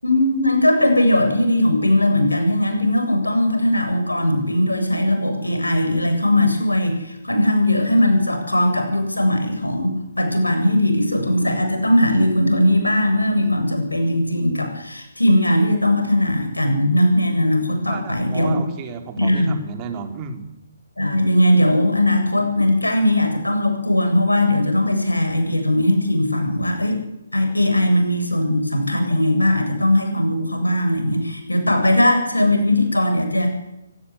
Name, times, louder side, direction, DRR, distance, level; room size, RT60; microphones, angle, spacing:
voice 1, 0.0-18.6 19.2-19.6 21.0-27.0 27.3-33.5, left 1 dB, 85° left, 5 dB, 7.9 m, -19 dB
voice 2, 17.9-20.5, right 6 dB, 25° right, 5 dB, 3.9 m, -33 dB
24.5 x 17.5 x 9.9 m, 0.91 s
figure-of-eight pair, 135°, 0 cm